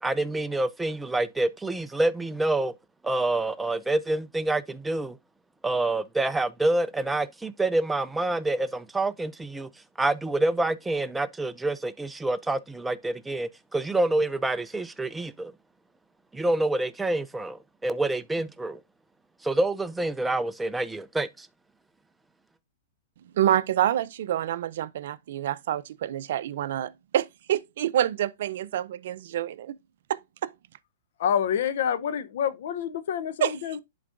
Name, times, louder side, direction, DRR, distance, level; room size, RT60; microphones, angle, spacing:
voice 1, 0.0-2.7 3.0-5.2 5.6-9.7 10.0-15.5 16.3-18.8 19.4-21.5, right 2 dB, 5° right, 0.4 m, -27 dB
voice 2, 23.3-29.8 30.1-30.5 33.4-33.5, right 11 dB, 65° right, 0.4 m, -27 dB
voice 3, 31.2-33.8, left 8 dB, 65° left, 0.7 m, -27 dB
11.0 x 3.9 x 2.5 m
hypercardioid pair, 135°, 0 cm